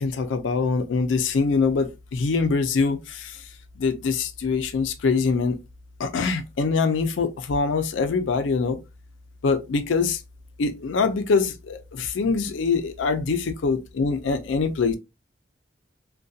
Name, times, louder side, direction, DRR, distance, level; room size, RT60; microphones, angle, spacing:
voice 1, 0.0-3.4 3.8-5.6 6.0-8.8 9.4-10.2 10.6-15.0, left 4 dB, 85° left, 0.4 m, -24 dB
2.6 x 2.2 x 2.3 m
head